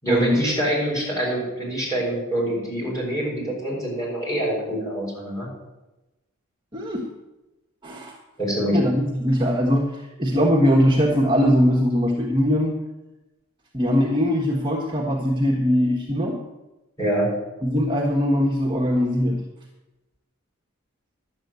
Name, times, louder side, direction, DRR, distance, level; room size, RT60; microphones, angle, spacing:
voice 1, 0.0-5.5 8.4-8.8 17.0-17.3, right 1 dB, 15° left, -5 dB, 6.3 m, -25 dB
voice 2, 6.7-7.1 7.8-8.1 8.7-12.8 13.7-16.4 17.6-19.4, equal, 20° right, -2 dB, 1.4 m, -21 dB
11.5 x 7.8 x 9.4 m, 1.0 s
head